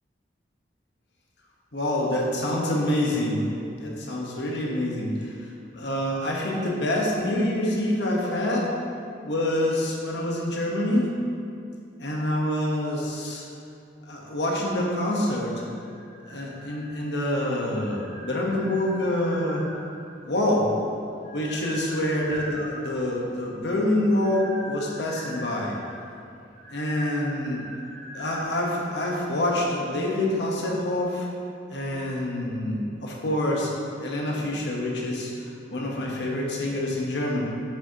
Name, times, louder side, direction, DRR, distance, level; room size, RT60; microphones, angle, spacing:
voice 1, 1.7-3.4 3.8-5.3 5.7-8.7 9.2-11.1 12.0-13.4 14.1-15.5 16.3-19.6 20.2-20.7 21.3-25.8 26.7-27.6 28.1-31.3 31.7-33.7 34.0-37.4, left 1 dB, 75° left, -2 dB, 1.2 m, -26 dB
sound 1, 15.6-17.2 17.7-20.1 20.9-23.0 23.9-28.4, right 1 dB, 40° right, 1.2 m, -42 dB
7.2 x 6.1 x 2.9 m, 2.6 s
head